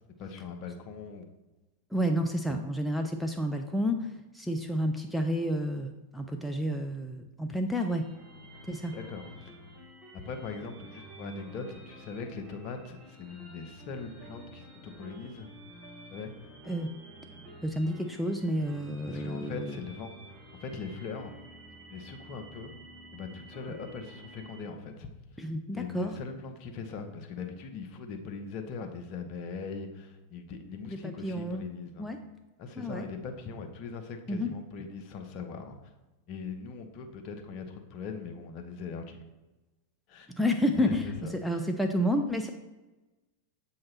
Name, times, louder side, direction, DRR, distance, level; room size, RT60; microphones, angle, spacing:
voice 1, 0.2-1.3 8.9-9.5 10.1-15.5 16.1-16.3 19.1-20.3 20.6-21.3 21.9-22.7 23.1-25.4 25.7-32.1 32.6-35.9 36.3-39.2 40.1-40.3 40.7-41.6, left 5 dB, 40° left, 5 dB, 0.7 m, -41 dB
voice 2, 1.9-8.1 8.7-8.9 16.7-16.9 17.6-19.8 25.4-26.1 30.9-31.7 32.0-32.2 32.8-33.1 34.3-34.5 40.4-41.1 41.4-42.5, equal, ahead, 3 dB, 0.4 m, -30 dB
sound 1, 7.9-24.6, right 1 dB, 20° right, 1.2 m, -50 dB
7.4 x 2.9 x 4.4 m, 1.1 s
figure-of-eight pair, 90°, 0 cm